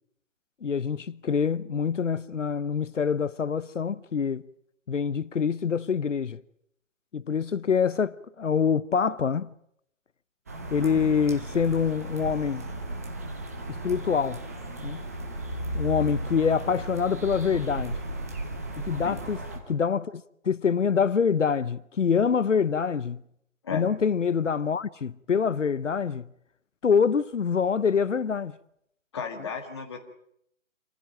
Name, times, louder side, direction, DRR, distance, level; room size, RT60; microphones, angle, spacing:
voice 1, 0.6-4.4 4.9-6.4 7.1-9.5 10.7-12.7 13.7-14.4 14.8-15.1 15.7-18.0 18.8-23.2 23.7-26.3 26.8-28.6, left 6 dB, 65° left, 0.9 m, -25 dB
sound 1, 10.5-19.6, right 1 dB, 10° right, 1.2 m, -35 dB
voice 2, 29.1-30.0, left 6 dB, 20° left, 1.9 m, -34 dB
27.5 x 15.5 x 9.0 m
hypercardioid pair, 175°, 40 cm